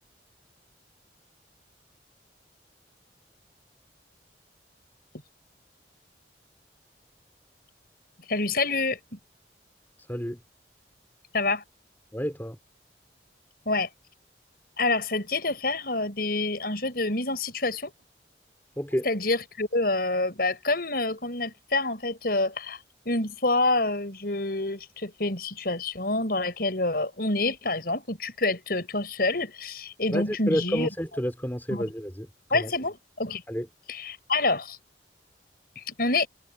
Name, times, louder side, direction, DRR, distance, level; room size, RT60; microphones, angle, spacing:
voice 1, 8.3-9.0 11.3-11.6 13.7-13.9 14.8-17.9 19.0-22.8 23.1-30.9 31.7-31.9 32.5-33.4 33.9-34.8 35.8-36.3, left 2 dB, 55° left, 7.1 m, -27 dB
voice 2, 10.1-10.4 12.1-12.6 18.8-19.0 30.1-32.3 32.5-32.7 33.5-33.7, equal, 10° left, 4.1 m, -30 dB
head